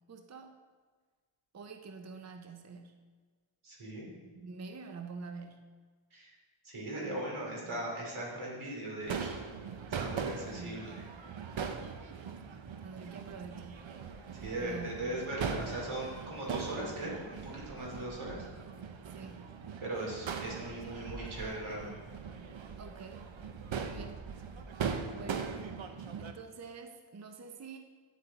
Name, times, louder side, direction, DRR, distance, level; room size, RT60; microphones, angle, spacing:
voice 1, 0.1-0.5 1.5-2.9 4.3-5.7 7.6-7.9 10.6-10.9 12.8-13.9 14.6-15.1 19.1-19.6 22.8-23.3 23.7-24.2 25.1-25.6 26.2-27.8, right 5 dB, 35° right, 5 dB, 0.6 m, -47 dB
voice 2, 3.6-4.1 6.1-6.3 6.6-9.4 9.9-10.9 14.4-18.4 19.8-22.0, right 1 dB, 90° right, -3 dB, 3.0 m, -39 dB
Crowd / Fireworks, 9.0-26.3, right 6 dB, 70° right, 0.8 m, -40 dB
9.0 x 8.1 x 4.0 m, 1.4 s
wide cardioid pair, 105°, 48 cm